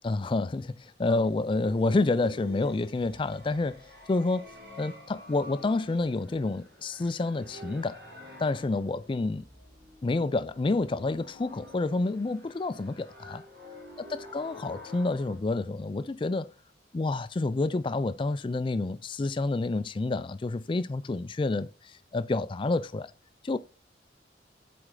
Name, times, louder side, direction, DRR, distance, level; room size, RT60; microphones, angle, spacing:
voice 1, 0.0-3.8 4.1-4.5 4.8-8.0 8.4-9.4 10.0-13.4 14.1-16.5 16.9-21.7 22.1-23.1 23.4-23.6, left 3 dB, 25° left, 0.3 m, -29 dB
sound 1, 1.1-15.4, left 1 dB, 65° right, 4.1 m, -49 dB
7.9 x 4.3 x 3.8 m
head